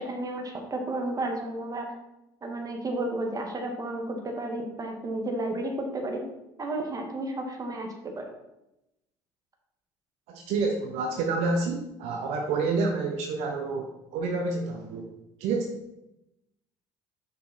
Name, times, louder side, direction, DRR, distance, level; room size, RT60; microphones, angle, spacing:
voice 1, 0.0-1.9 2.4-6.2 6.6-8.3, right 1 dB, 30° right, 3 dB, 1.8 m, -32 dB
voice 2, 10.3-15.1 15.4-15.8, right 3 dB, 65° right, 2 dB, 1.0 m, -28 dB
6.4 x 5.5 x 4.2 m, 0.90 s
hypercardioid pair, 70°, 12 cm